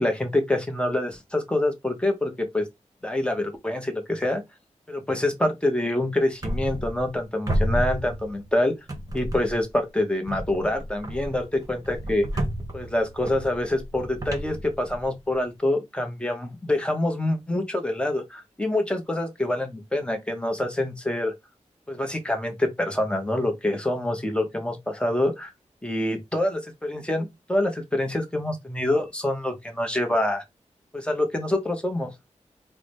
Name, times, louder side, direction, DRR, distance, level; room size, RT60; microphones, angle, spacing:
voice 1, 0.0-2.6 3.0-4.4 4.9-8.7 9.1-12.3 12.7-21.3 21.9-25.5 25.8-30.4 30.9-32.1, left 1 dB, 10° left, 0.9 m, -26 dB
sound 1, 6.4-7.2 7.5-8.5 8.9-9.7 10.3-15.4, equal, 30° right, 0.9 m, -31 dB
3.8 x 2.1 x 3.3 m
wide cardioid pair, 75°, 12 cm